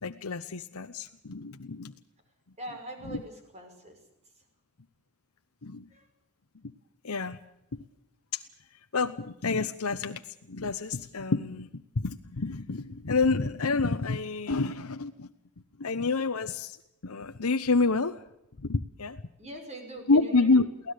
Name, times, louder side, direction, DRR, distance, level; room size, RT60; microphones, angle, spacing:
voice 1, 0.0-1.9 3.0-3.2 5.6-5.9 7.0-7.4 8.3-8.4 8.9-10.2 10.5-15.3 15.8-16.8 17.0-18.1 18.6-19.2 20.1-20.9, left 3 dB, 75° left, 7 dB, 0.9 m, -28 dB
voice 2, 2.6-4.0 5.9-6.1 19.4-20.5, right 1 dB, 30° right, 5 dB, 5.6 m, -42 dB
23.5 x 17.0 x 6.6 m, 0.81 s
head